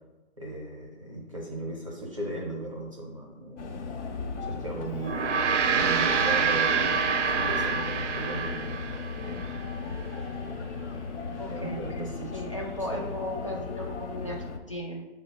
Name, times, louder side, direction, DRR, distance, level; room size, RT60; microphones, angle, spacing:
voice 1, 0.4-3.8 4.4-5.4 5.7-8.8 11.4-12.4 12.9-13.0, right 1 dB, 30° right, -3 dB, 0.5 m, -37 dB
sound 1, 3.6-14.6, left 4 dB, 85° left, 0.8 m, -36 dB
Gong, 5.0-9.6, right 6 dB, 90° right, 0.5 m, -26 dB
voice 2, 11.4-15.1, left 1 dB, 30° left, -1 dB, 0.4 m, -36 dB
6.2 x 2.1 x 3.9 m, 1.1 s
hypercardioid pair, 170°, 35 cm